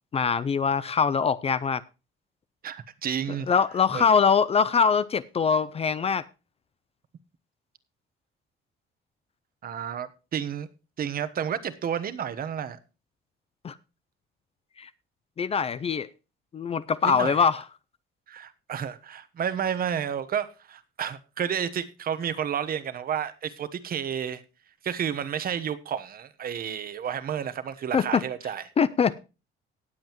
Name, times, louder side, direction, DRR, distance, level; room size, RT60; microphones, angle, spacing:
voice 1, 0.1-1.8 3.5-6.2 13.6-13.8 14.8-14.9 15.4-16.1 16.5-17.6 27.9-28.2 28.8-29.1, left 6 dB, 30° left, 0.5 m, -23 dB
voice 2, 2.6-3.5 3.9-4.1 9.6-10.7 11.0-12.8 17.0-17.5 18.3-24.4 24.8-28.6, right 8 dB, 45° right, 1.1 m, -31 dB
18.0 x 7.7 x 3.0 m
cardioid pair, 145°, 20 cm